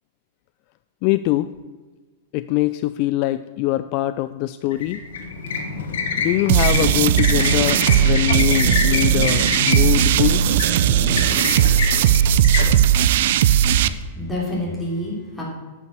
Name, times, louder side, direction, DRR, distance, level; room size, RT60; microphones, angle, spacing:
voice 1, 1.0-1.5 2.3-5.0 6.2-10.5, left 16 dB, 45° left, 13 dB, 0.3 m, -23 dB
sound 1, 4.7-14.0, left 4 dB, 80° left, 1.5 m, -26 dB
sound 2, 6.5-13.9, right 10 dB, 65° right, 0.4 m, -17 dB
voice 2, 13.6-15.4, left 1 dB, 5° left, -4 dB, 3.1 m, -28 dB
9.0 x 5.7 x 7.3 m, 1.3 s
hypercardioid pair, 140°, 0 cm